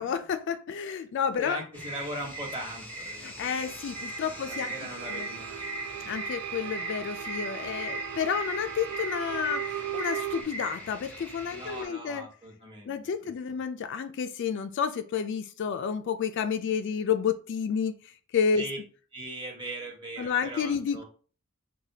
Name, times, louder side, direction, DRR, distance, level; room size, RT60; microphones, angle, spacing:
voice 1, 0.0-1.6 3.2-4.7 5.1-5.3 6.1-12.3 12.9-18.6 20.2-21.0, left 7 dB, 55° left, 8 dB, 0.3 m, -30 dB
voice 2, 1.4-3.8 4.1-5.6 11.5-12.9 13.5-13.6 18.6-18.8 19.1-21.0, right 1 dB, 20° right, -1 dB, 1.1 m, -40 dB
sound 1, 1.7-11.8, right 1 dB, 5° left, 0.6 m, -39 dB
sound 2, 3.7-10.4, right 10 dB, 85° right, 0.3 m, -38 dB
4.8 x 2.2 x 2.7 m, 0.39 s
head